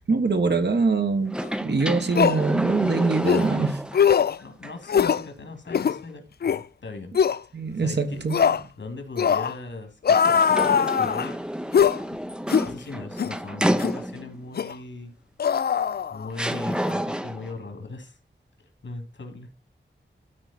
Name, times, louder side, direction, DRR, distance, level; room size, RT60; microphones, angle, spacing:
voice 1, 0.0-3.9 7.5-8.5, right 4 dB, 65° right, 1.4 m, -24 dB
sound 1, 1.3-4.2 4.6-4.7 10.1-14.4 15.5-15.6 16.3-17.5, equal, 5° right, 0.6 m, -29 dB
sound 2, 1.4-1.5 2.1-2.4 3.2-3.5 3.9-4.4 4.9-5.2 5.7-6.0 6.4-6.6 7.2-7.4 8.3-8.6 9.2-9.5 10.0-11.3 11.7-12.0 12.5-12.7 13.2-13.3 13.8-14.0 14.6-14.7 15.4-16.5 16.7-16.9, left 7 dB, 55° left, 0.4 m, -21 dB
voice 2, 4.4-7.1 7.8-8.3 8.8-11.4 12.7-15.1 16.1-18.2 18.8-19.5, left 3 dB, 75° left, 2.5 m, -39 dB
12.5 x 4.8 x 4.2 m
wide cardioid pair, 85°, 19 cm